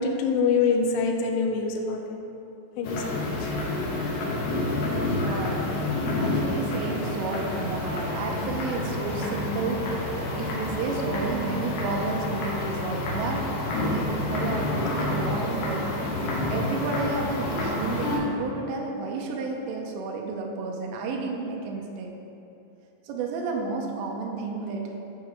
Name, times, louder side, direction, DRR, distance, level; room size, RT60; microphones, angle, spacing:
voice 1, 0.0-2.2 2.8-3.5, left 5 dB, 85° left, 2 dB, 2.4 m, -25 dB
sound 1, 2.8-18.2, left 2 dB, 70° left, 2.5 m, -29 dB
voice 2, 4.9-22.1 23.0-25.2, right 3 dB, 85° right, 1 dB, 2.6 m, -32 dB
11.5 x 4.7 x 3.4 m, 2.8 s
omnidirectional pair, 5.6 m